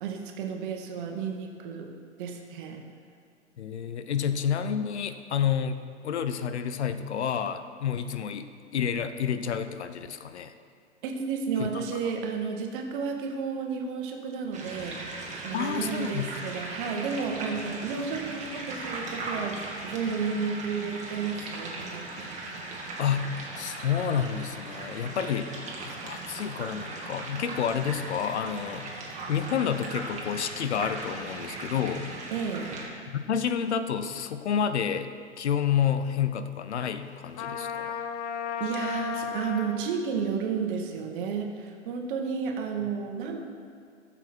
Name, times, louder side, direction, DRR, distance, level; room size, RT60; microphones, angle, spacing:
voice 1, 0.0-1.9 2.2-2.8 11.0-22.1 32.3-32.7 38.6-43.4, right 6 dB, 45° right, 3 dB, 1.5 m, -32 dB
voice 2, 3.6-10.5 11.6-11.9 15.5-16.3 23.0-28.9 29.3-32.1 33.1-35.1 35.4-38.0, left 8 dB, 65° left, 10 dB, 0.7 m, -29 dB
sound 1, 14.5-32.9, right 2 dB, 20° right, 1.8 m, -38 dB
Trumpet, 37.3-39.9, left 7 dB, 35° left, 0.7 m, -34 dB
14.5 x 7.2 x 4.5 m, 2.2 s
figure-of-eight pair, 110°, 35 cm